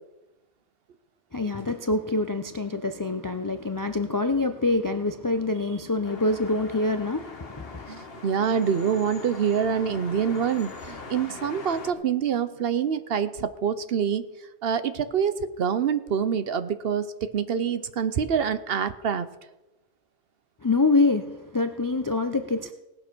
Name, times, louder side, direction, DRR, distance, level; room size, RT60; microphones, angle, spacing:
voice 1, 1.3-7.9 20.6-22.7, left 3 dB, 25° left, 0.4 m, -25 dB
sound 1, 6.0-11.9, left 4 dB, 60° left, 1.5 m, -41 dB
voice 2, 7.9-14.3 14.6-19.3, right 7 dB, 65° right, 0.9 m, -26 dB
18.0 x 6.8 x 6.0 m
omnidirectional pair, 1.1 m